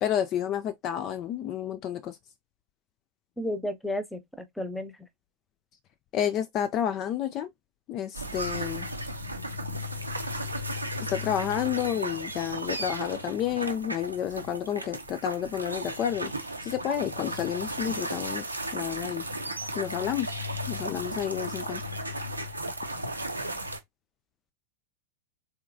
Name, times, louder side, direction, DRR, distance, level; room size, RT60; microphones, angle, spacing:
voice 1, 0.0-2.2 6.1-7.5 7.9-8.9 11.0-16.3 16.6-18.4 18.7-19.2 19.7-20.4 20.7-21.8, left 10 dB, 35° left, 0.3 m, -30 dB
voice 2, 3.4-4.9, left 1 dB, 5° left, 0.6 m, -32 dB
sound 1, 8.1-23.8, right 1 dB, 85° right, 0.6 m, -35 dB
3.8 x 2.7 x 2.5 m
figure-of-eight pair, 90°, 0 cm